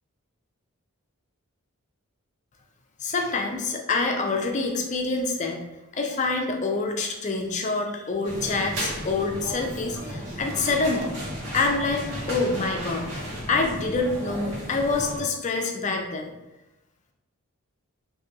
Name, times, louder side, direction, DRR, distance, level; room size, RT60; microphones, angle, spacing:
voice 1, 3.0-5.6 5.9-11.2 11.5-13.1 13.5-16.3, left 3 dB, 35° left, 2 dB, 0.4 m, -26 dB
sound 1, 8.2-15.2, equal, 90° right, 1.2 m, -34 dB
3.9 x 2.6 x 2.7 m, 0.98 s
head